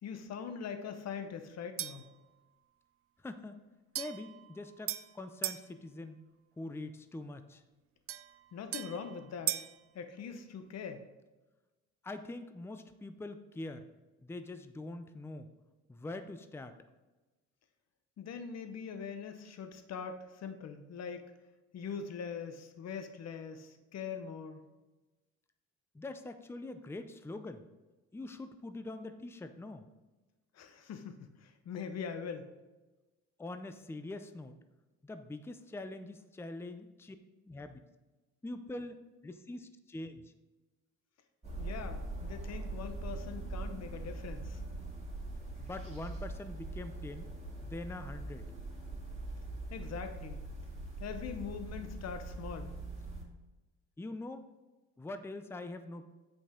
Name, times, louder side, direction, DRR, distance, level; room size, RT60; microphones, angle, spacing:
voice 1, 0.0-2.0 8.5-9.6 9.9-11.0 18.2-21.3 21.7-24.6 30.5-32.5 41.6-44.6 49.7-50.4 51.0-52.7, left 6 dB, 60° left, 7 dB, 0.9 m, -42 dB
sound 1, 1.8-2.1 4.0-5.7 8.1-9.8, right 12 dB, 50° right, 0.4 m, -39 dB
voice 2, 3.2-3.6 4.0-6.2 6.6-7.6 12.0-13.8 14.2-15.5 15.9-16.7 25.9-27.6 28.1-29.9 33.4-34.6 35.0-37.2 37.4-37.8 38.4-39.0 39.2-40.3 45.6-47.3 47.6-48.4 54.0-54.5 55.0-56.1, left 2 dB, 10° left, 9 dB, 0.5 m, -44 dB
sound 2, 41.4-53.2, right 2 dB, 20° right, 2.1 m, -42 dB
8.4 x 5.3 x 3.7 m, 1.1 s
cardioid pair, 90°, 30 cm